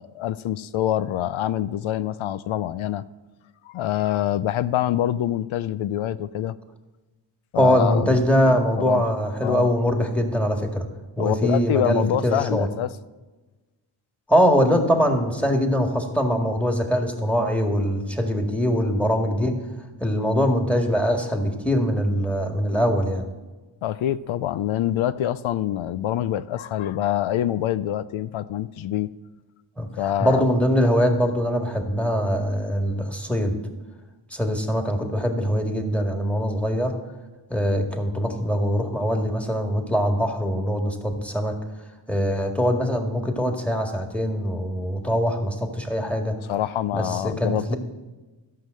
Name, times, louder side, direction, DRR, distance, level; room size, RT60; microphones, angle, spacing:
voice 1, 0.0-3.0 3.6-6.5 7.5-9.1 9.4-9.7 11.2-12.9 23.8-29.1 30.0-30.4 46.5-47.7, left 12 dB, 80° left, 15 dB, 0.6 m, -25 dB
voice 2, 7.6-10.9 11.2-12.7 14.3-19.6 20.0-23.3 29.8-29.9 30.2-33.6 34.3-37.0 37.5-41.6 42.1-46.4 46.9-47.8, equal, 5° left, 4 dB, 1.8 m, -22 dB
12.5 x 5.8 x 7.6 m, 1.2 s
cardioid pair, 60°, 48 cm